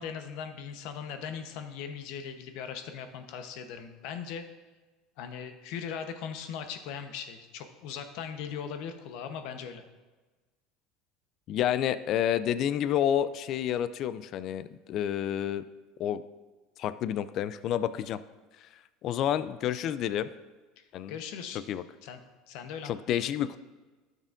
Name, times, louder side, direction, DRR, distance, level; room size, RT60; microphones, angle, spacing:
voice 1, 0.0-4.4 5.2-9.8 20.8-21.6 22.0-22.2 22.5-22.9, left 7 dB, 70° left, 7 dB, 0.9 m, -39 dB
voice 2, 11.5-15.6 16.0-16.2 16.8-18.2 19.0-20.3 20.9-21.1 21.7-21.8 22.8-23.6, left 10 dB, 50° left, 14 dB, 0.4 m, -29 dB
12.0 x 6.5 x 2.5 m, 1.2 s
supercardioid pair, 120°, 0 cm